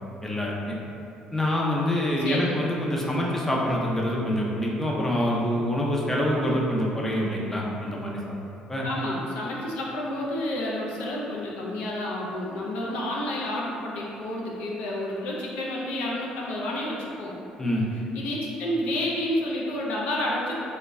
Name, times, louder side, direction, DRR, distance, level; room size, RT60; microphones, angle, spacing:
voice 1, 0.2-0.8 1.3-8.2 8.7-8.9 17.6-17.8, left 1 dB, 10° left, -4 dB, 0.5 m, -26 dB
voice 2, 2.2-2.6 8.8-17.3 17.9-20.6, left 1 dB, 75° left, -3 dB, 0.4 m, -30 dB
2.2 x 2.0 x 3.4 m, 2.6 s
supercardioid pair, 80°, 3 cm